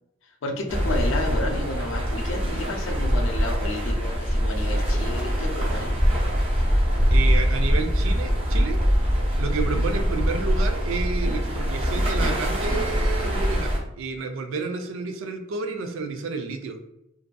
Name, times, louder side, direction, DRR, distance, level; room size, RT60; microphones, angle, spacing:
voice 1, 0.4-6.0, left 2 dB, 70° left, 4 dB, 0.4 m, -31 dB
sound 1, 0.7-13.8, equal, 30° right, 0.6 m, -23 dB
voice 2, 7.1-8.8 9.4-16.8, right 4 dB, 80° right, 6 dB, 0.4 m, -30 dB
2.6 x 2.4 x 2.2 m, 0.85 s
head